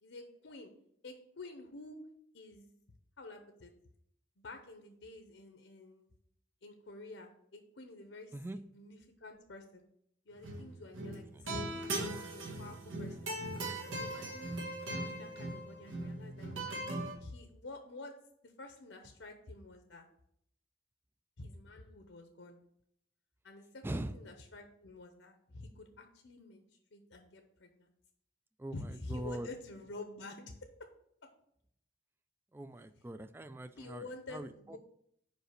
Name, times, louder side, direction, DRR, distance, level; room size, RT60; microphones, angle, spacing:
voice 1, 0.0-0.7 1.0-2.1 2.3-2.7 3.2-3.7 4.4-6.1 6.6-9.8 10.3-12.0 12.3-13.3 14.0-14.5 14.9-16.7 17.2-18.2 18.4-20.1 21.4-22.6 23.4-27.9 28.7-30.9 31.2-31.3 33.8-34.8, left 2 dB, 70° left, 6 dB, 0.8 m, -49 dB
sound 1, 10.3-10.7 10.9-17.1, right 1 dB, 85° right, 1.8 m, -39 dB
voice 2, 23.8-24.1 28.6-29.5 32.5-34.8, right 1 dB, 10° right, 11 dB, 0.3 m, -42 dB
5.3 x 5.0 x 6.5 m, 0.72 s
head